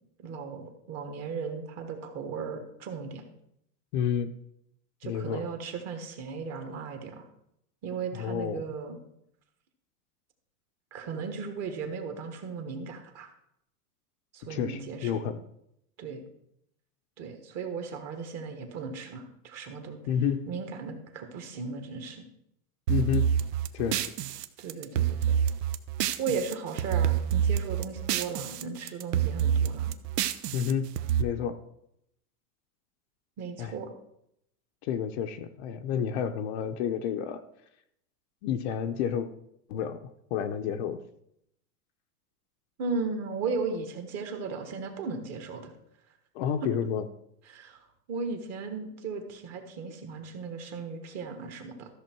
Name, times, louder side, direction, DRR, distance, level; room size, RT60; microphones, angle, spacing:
voice 1, 0.2-3.2 5.0-7.3 7.8-9.0 10.9-13.3 14.3-15.2 16.0-16.2 17.2-20.0 20.5-22.2 24.6-25.4 26.2-29.9 33.4-33.9 42.8-45.7 47.5-51.9, right 5 dB, 30° right, 5 dB, 1.6 m, -36 dB
voice 2, 3.9-4.3 5.0-5.4 8.1-8.6 14.5-15.4 20.1-20.4 22.9-23.3 23.7-24.1 30.5-30.9 31.2-31.6 33.6-33.7 34.8-37.4 38.4-39.3 39.7-40.0 40.3-41.0 46.3-47.1, left 8 dB, 45° left, 7 dB, 0.7 m, -30 dB
sound 1, 22.9-26.5 26.8-28.6 28.9-31.2, right 9 dB, 80° right, 0.9 m, -27 dB
13.5 x 6.6 x 4.6 m, 0.77 s
supercardioid pair, 150°, 47 cm